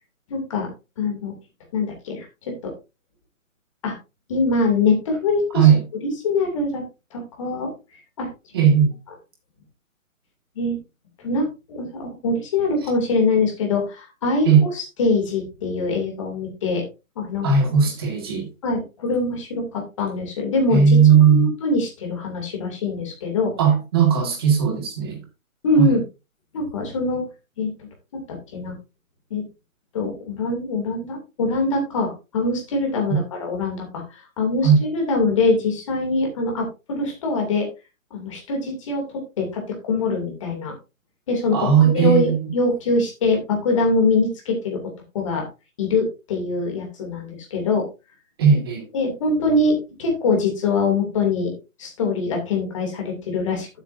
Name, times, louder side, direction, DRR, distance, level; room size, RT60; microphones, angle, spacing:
voice 1, 0.3-0.7 1.0-1.3 1.7-2.7 3.8-3.9 4.3-5.7 6.2-6.8 7.1-7.7 8.2-8.3 10.6-10.8 11.2-16.8 17.2-17.5 18.6-20.8 21.2-23.5 25.6-26.0 26.5-27.2 27.6-27.7 28.1-28.8 29.3-29.4 29.9-33.8 34.1-37.7 38.1-39.0 39.4-40.7 41.3-44.8 45.1-45.4 45.8-47.8 48.9-51.5 51.8-53.7, left 3 dB, 25° left, 2.7 m, -23 dB
voice 2, 8.5-8.9 14.5-14.6 17.4-18.5 20.7-21.5 23.6-25.2 25.8-26.0 34.6-34.8 41.5-42.5 48.4-48.8, right 7 dB, 20° right, 1.8 m, -17 dB
11.5 x 8.1 x 2.6 m
hypercardioid pair, 175°, 40 cm